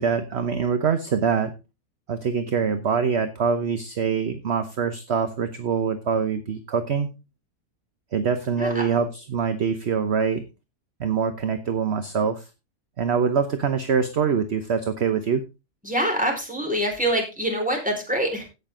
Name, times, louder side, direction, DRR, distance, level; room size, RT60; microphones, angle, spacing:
voice 1, 0.0-1.5 2.1-7.1 8.1-10.4 11.0-12.4 13.0-15.4, right 6 dB, 50° right, 9 dB, 1.1 m, -24 dB
voice 2, 15.8-18.4, equal, 5° right, 1 dB, 4.6 m, -25 dB
16.5 x 6.7 x 3.8 m, 0.27 s
omnidirectional pair, 1.6 m